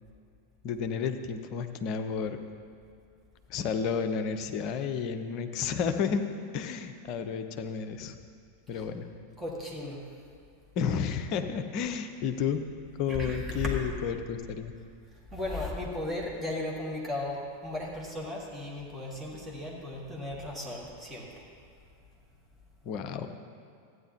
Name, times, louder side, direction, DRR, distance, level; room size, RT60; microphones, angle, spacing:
voice 1, 0.6-2.4 3.5-6.3 6.5-8.2 8.7-9.1 10.8-12.6 13.0-14.7 22.8-23.3, left 6 dB, 40° left, 7 dB, 0.6 m, -31 dB
voice 2, 9.4-10.0 13.1-13.8 15.3-21.5, left 2 dB, 5° right, -4 dB, 1.9 m, -36 dB
14.0 x 9.4 x 2.9 m, 2.3 s
figure-of-eight pair, 90°, 0 cm